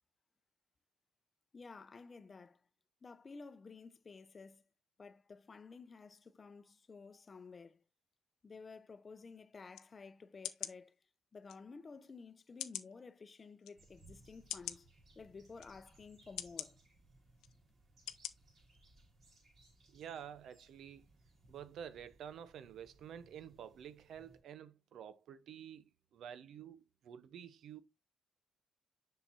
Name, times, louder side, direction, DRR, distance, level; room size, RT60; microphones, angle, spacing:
voice 1, 1.5-2.6 3.0-4.6 5.0-7.8 8.4-10.9 11.3-14.9 15.2-16.8, left 4 dB, 35° left, 0.7 m, -53 dB
sound 1, 9.7-9.9 10.4-10.8 11.5-11.6 12.6-12.9 13.6-13.7 14.5-14.8 15.6-15.7 16.4-16.7 17.4-17.5 18.1-18.3 18.7-18.8, left 12 dB, 90° left, 0.6 m, -42 dB
sound 2, 13.8-24.4, right 2 dB, 55° right, 3.8 m, -65 dB
voice 2, 19.9-21.1 21.5-25.8 26.1-27.8, right 9 dB, 70° right, 0.6 m, -50 dB
7.1 x 5.7 x 2.5 m
cardioid pair, 90°, 0 cm